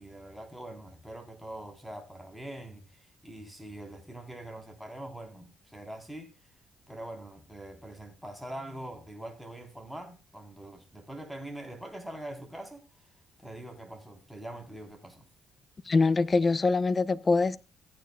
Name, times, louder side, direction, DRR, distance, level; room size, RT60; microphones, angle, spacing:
voice 1, 0.0-6.5 6.9-13.1 13.4-15.2, right 1 dB, ahead, 3.5 m, -43 dB
voice 2, 15.9-17.6, left 3 dB, 30° left, 0.7 m, -24 dB
15.5 x 9.2 x 2.2 m
cardioid pair, 90°, 0 cm